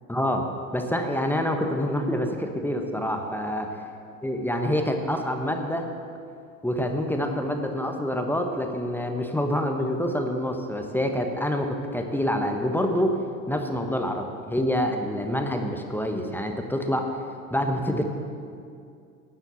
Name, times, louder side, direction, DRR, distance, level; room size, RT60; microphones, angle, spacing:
voice 1, 0.1-0.4 0.7-3.7 4.2-5.8 6.6-13.2 13.5-17.1 17.5-18.0, equal, 5° left, 4 dB, 1.2 m, -26 dB
10.5 x 8.9 x 7.2 m, 2.4 s
hypercardioid pair, 70°, 43 cm